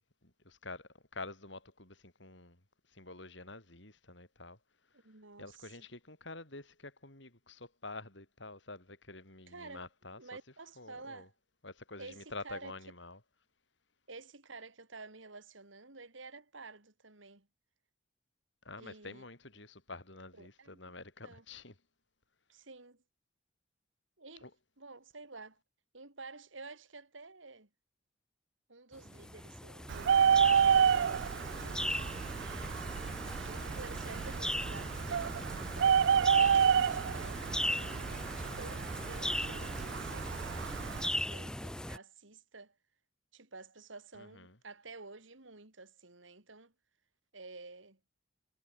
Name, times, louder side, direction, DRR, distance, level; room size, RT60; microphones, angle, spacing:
voice 1, 0.0-2.6 2.9-4.6 5.4-10.2 10.8-11.3 11.6-13.2 18.6-21.7 24.4-24.5 44.1-44.6, left 3 dB, 70° left, 5.8 m, -48 dB
voice 2, 4.9-5.8 9.5-9.9 10.2-11.3 12.0-12.7 14.1-17.5 18.7-19.2 20.4-20.9 21.2-21.4 22.5-23.0 24.2-24.5 24.8-25.6 25.9-27.7 28.7-32.3 33.2-40.7 41.1-42.8 43.3-46.7 47.3-48.0, right 3 dB, 80° right, 3.3 m, -51 dB
sound 1, 29.0-42.0, left 1 dB, 5° left, 1.1 m, -39 dB
Bird, 29.9-41.1, right 7 dB, 65° right, 0.3 m, -30 dB
head